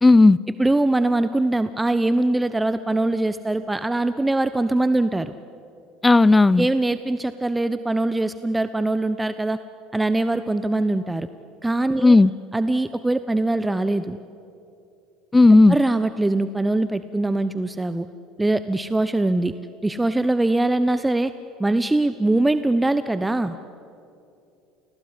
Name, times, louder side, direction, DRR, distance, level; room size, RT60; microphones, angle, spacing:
voice 1, 0.0-0.4 6.0-6.7 12.0-12.3 15.3-15.8, left 2 dB, 15° left, 21 dB, 0.6 m, -13 dB
voice 2, 0.6-5.3 6.6-9.6 9.9-11.3 11.6-12.2 12.5-14.2 15.7-18.1 18.4-19.5 19.8-21.3 21.6-23.6, right 2 dB, 10° right, 12 dB, 1.0 m, -22 dB
29.0 x 20.5 x 9.9 m, 2.7 s
hypercardioid pair, 70°, 0 cm